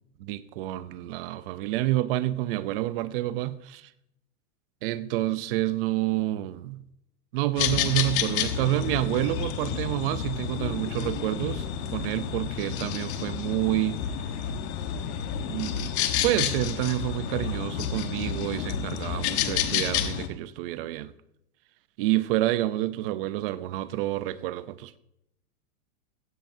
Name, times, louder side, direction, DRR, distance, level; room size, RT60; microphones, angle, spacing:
voice 1, 0.2-3.9 4.8-6.9 7.3-11.7 11.9-14.0 15.5-15.9 16.2-21.1 22.0-25.0, right 15 dB, 40° right, 0.6 m, -28 dB
sound 1, 7.6-20.3, left 9 dB, 50° left, 1.3 m, -30 dB
16.0 x 15.5 x 2.7 m
supercardioid pair, 155°, 44 cm